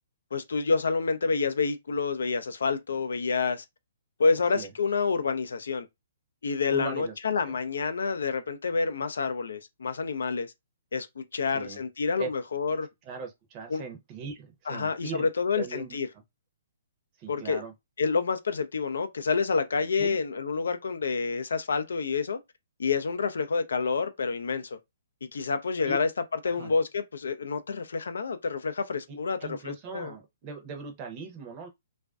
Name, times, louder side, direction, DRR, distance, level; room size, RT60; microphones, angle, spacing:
voice 1, 0.3-3.6 4.2-5.9 6.4-10.5 10.9-12.9 13.7-13.8 14.7-16.1 17.3-17.6 18.0-22.4 22.8-24.8 25.2-26.1 26.4-30.1, left 4 dB, 75° left, 0.4 m, -28 dB
voice 2, 6.7-7.5 11.5-11.8 12.2-12.3 13.1-15.3 15.6-16.0 17.2-17.7 20.0-20.2 25.9-26.0 26.4-26.7 29.1-31.7, right 5 dB, 30° right, 0.7 m, -39 dB
2.4 x 2.2 x 2.3 m
hypercardioid pair, 130°, 0 cm